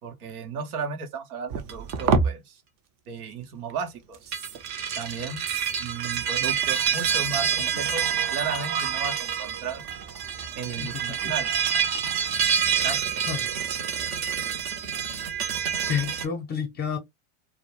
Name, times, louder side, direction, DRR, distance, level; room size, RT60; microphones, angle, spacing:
voice 1, 0.0-2.6 3.1-4.3 5.0-5.4 5.8-9.8 10.6-11.5 12.8-13.0, right 5 dB, 85° right, 0.8 m, -34 dB
sound 1, 1.5-2.3 4.1-16.3, right 7 dB, 40° right, 0.6 m, -27 dB
voice 2, 10.8-11.3 13.3-13.4 15.9-17.0, left 7 dB, 25° left, 0.6 m, -30 dB
2.2 x 2.1 x 3.0 m
hypercardioid pair, 105°, 44 cm